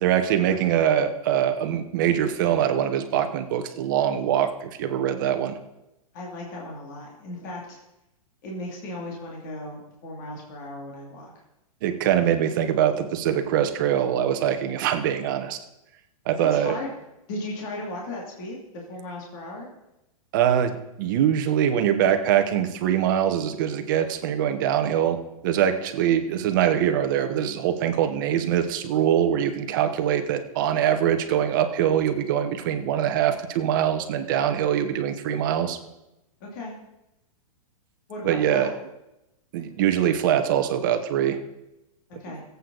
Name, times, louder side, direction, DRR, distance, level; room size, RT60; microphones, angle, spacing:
voice 1, 0.0-5.6 11.8-15.6 16.2-16.8 20.3-20.7 21.0-35.8 38.2-38.7 39.5-41.4 42.3-42.4, right 10 dB, 35° right, 7 dB, 1.1 m, -23 dB
voice 2, 6.1-7.8 8.4-11.3 16.4-16.9 17.3-19.7 36.4-36.8 38.1-38.7 42.2-42.4, left 1 dB, 35° left, -2 dB, 2.6 m, -36 dB
22.0 x 8.3 x 4.0 m, 0.92 s
supercardioid pair, 175°, 18 cm